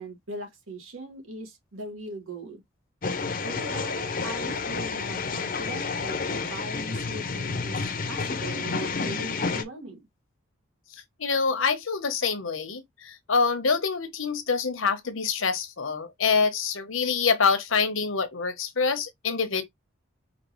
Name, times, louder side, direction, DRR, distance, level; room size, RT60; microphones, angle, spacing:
voice 1, 0.0-2.6 3.4-7.8 8.1-10.1, right 1 dB, 80° right, 1.7 m, -39 dB
sound 1, 3.0-9.6, left 4 dB, 40° left, 0.6 m, -30 dB
voice 2, 11.2-19.6, left 5 dB, 75° left, 0.9 m, -26 dB
5.1 x 2.9 x 3.0 m
head